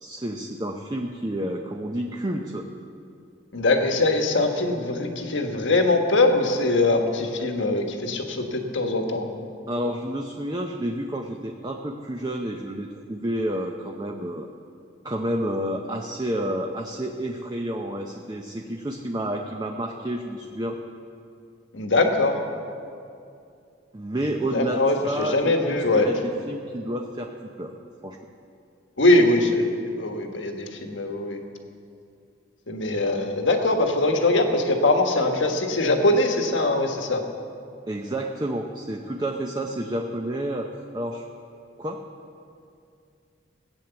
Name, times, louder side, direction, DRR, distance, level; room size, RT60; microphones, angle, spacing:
voice 1, 0.0-2.7 9.7-14.5 15.0-20.8 23.9-27.3 27.6-27.7 28.0-28.2 37.9-41.2 41.8-42.1, right 1 dB, 25° right, 2 dB, 0.6 m, -30 dB
voice 2, 3.5-9.3 21.7-22.4 24.5-26.1 29.0-29.7 30.0-31.4 32.7-37.2, left 2 dB, 90° left, 4 dB, 1.4 m, -22 dB
16.0 x 8.9 x 7.0 m, 2.6 s
head